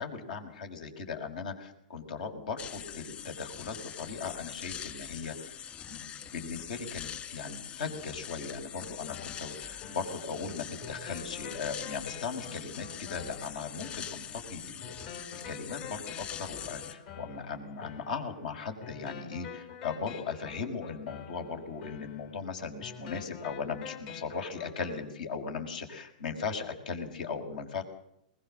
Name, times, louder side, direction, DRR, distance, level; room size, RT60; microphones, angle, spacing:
voice 1, 0.0-5.6 5.9-15.0 15.3-27.8, left 5 dB, 75° left, 6 dB, 5.8 m, -38 dB
sound 1, 2.6-16.9, left 9 dB, 30° left, 2.6 m, -43 dB
sound 2, 9.1-25.1, left 7 dB, 55° left, 5.4 m, -47 dB
22.5 x 20.5 x 7.8 m, 0.75 s
hypercardioid pair, 130°, 5 cm